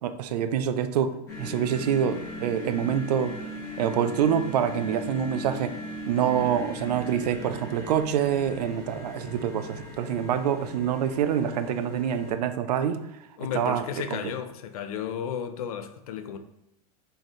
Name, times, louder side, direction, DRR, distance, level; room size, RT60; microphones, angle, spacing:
voice 1, 0.0-3.3 3.8-5.8 6.1-13.0 13.5-13.8 14.1-14.3, right 9 dB, 80° right, 0.5 m, -26 dB
sound 1, 1.3-12.3, left 1 dB, 15° left, 0.9 m, -39 dB
voice 2, 13.4-16.4, left 8 dB, 65° left, 0.5 m, -33 dB
4.2 x 3.3 x 3.7 m
supercardioid pair, 180°, 20 cm